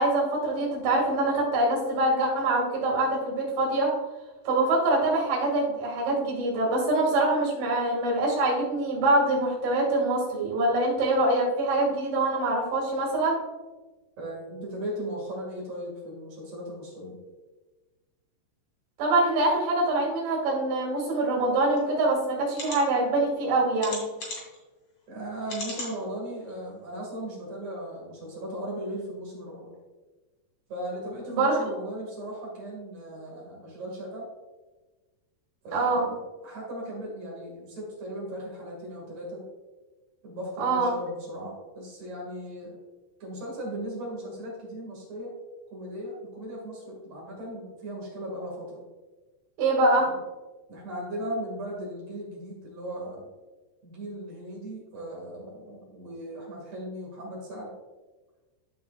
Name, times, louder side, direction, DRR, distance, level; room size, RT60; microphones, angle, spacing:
voice 1, 0.0-3.9 4.5-13.4 19.0-24.0 31.3-31.6 35.7-36.1 40.6-40.9 49.6-50.1, right 2 dB, 60° right, -3 dB, 4.2 m, -24 dB
voice 2, 14.2-17.2 25.1-29.7 30.7-34.3 35.6-39.4 40.2-42.7 43.2-45.3 45.7-48.8 50.0-50.2 50.7-53.3 53.8-57.7, right 1 dB, 45° right, -3 dB, 2.7 m, -37 dB
sound 1, 21.8-21.9 22.5-22.8 23.8-24.6 25.5-25.9 26.5-26.6 26.9-27.0, left 2 dB, 40° left, 2.7 m, -36 dB
14.0 x 5.5 x 2.5 m, 1.2 s
omnidirectional pair, 5.6 m